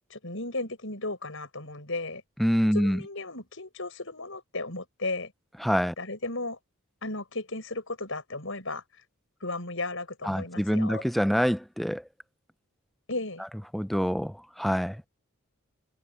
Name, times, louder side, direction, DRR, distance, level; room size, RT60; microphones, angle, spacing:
voice 1, 0.1-2.2 2.7-5.3 6.0-6.6 7.0-8.8 9.4-11.0 13.1-13.5, left 2 dB, 60° left, 7.7 m, -35 dB
voice 2, 2.4-3.0 5.6-5.9 10.3-12.0 13.7-15.1, equal, ahead, 0.4 m, -26 dB
head